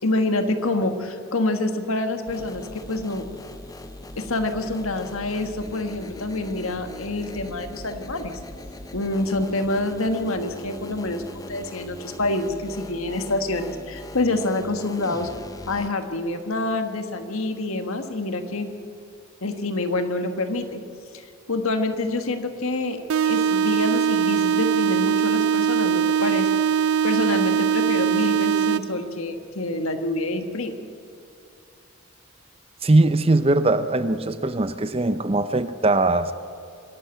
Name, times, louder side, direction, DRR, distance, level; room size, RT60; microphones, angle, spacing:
voice 1, 0.0-3.3 4.1-8.4 8.9-15.3 15.6-18.7 19.4-20.8 21.1-26.5 27.0-30.8, left 2 dB, 75° left, 7 dB, 1.6 m, -27 dB
sound 1, 2.3-15.9, left 1 dB, 15° left, 0.7 m, -40 dB
sound 2, 23.1-29.1, right 8 dB, 75° right, 0.5 m, -21 dB
voice 2, 32.8-36.3, right 2 dB, 25° right, 12 dB, 0.6 m, -20 dB
25.5 x 11.5 x 8.9 m, 2.6 s
head